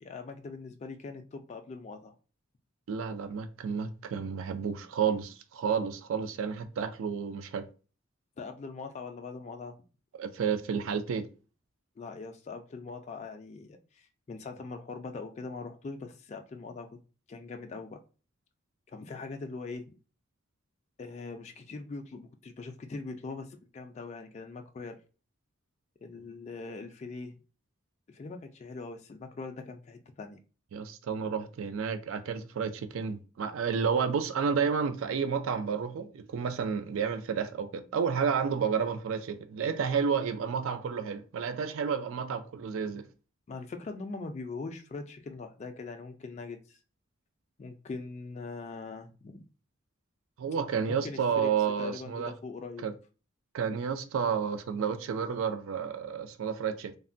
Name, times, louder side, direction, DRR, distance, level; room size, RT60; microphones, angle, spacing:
voice 1, 0.0-2.1 8.4-9.8 12.0-17.0 17.3-18.0 18.9-19.8 21.0-25.0 26.0-27.3 28.1-30.4 43.5-46.8 47.6-49.5 50.9-51.5 51.8-52.8, left 3 dB, 35° left, 0.3 m, -41 dB
voice 2, 2.9-7.7 10.2-11.3 30.7-43.1 50.4-52.3 52.8-52.9 53.5-57.0, right 6 dB, 65° right, 0.4 m, -31 dB
3.2 x 2.1 x 2.5 m
head